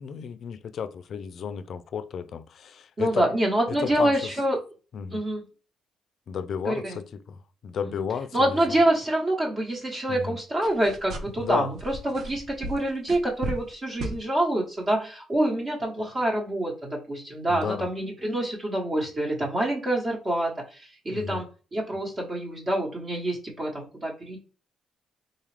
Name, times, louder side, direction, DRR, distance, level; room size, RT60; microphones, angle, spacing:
voice 1, 0.0-3.2 3.7-4.1 4.9-5.2 6.3-8.5 10.1-10.4 11.4-11.7 17.5-17.9 21.1-21.4, left 7 dB, 60° left, 0.3 m, -33 dB
voice 2, 3.0-4.6 5.1-5.4 6.6-7.0 7.8-8.1 8.3-24.4, right 1 dB, 35° right, 1.0 m, -26 dB
sound 1, 10.6-11.5 11.8-13.7 14.0-14.2, right 2 dB, 65° right, 0.6 m, -35 dB
3.8 x 2.3 x 3.2 m
cardioid pair, 90°, 0 cm